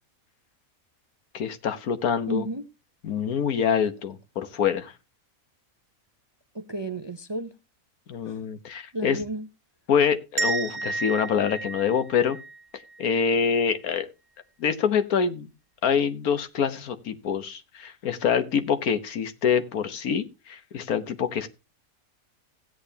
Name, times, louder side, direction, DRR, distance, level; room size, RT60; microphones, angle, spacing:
voice 1, 1.3-2.4 3.0-4.9 8.1-9.2 9.9-12.4 13.0-14.1 14.6-15.5 15.8-21.5, left 7 dB, 85° left, 1.5 m, -25 dB
voice 2, 2.3-2.7 6.5-7.5 8.2-8.5 8.9-9.5 10.7-10.9, right 2 dB, 35° right, 0.4 m, -33 dB
sound 1, 10.4-13.2, right 3 dB, 80° right, 1.7 m, -32 dB
16.0 x 8.6 x 2.8 m
omnidirectional pair, 1.5 m